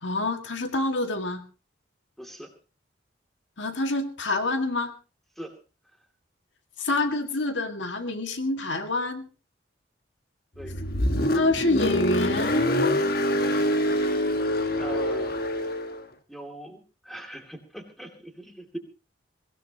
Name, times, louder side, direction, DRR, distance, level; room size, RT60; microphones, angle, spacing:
voice 1, 0.0-1.4 3.6-4.9 6.8-9.3 11.3-13.0, left 2 dB, 75° left, 7 dB, 1.9 m, -27 dB
voice 2, 2.2-2.5 5.4-5.5 10.6-10.7 14.8-15.4 16.3-18.8, right 1 dB, ahead, 4 dB, 2.5 m, -40 dB
Car, 10.6-16.0, left 1 dB, 50° left, 1.4 m, -25 dB
22.5 x 17.0 x 2.9 m, 0.33 s
head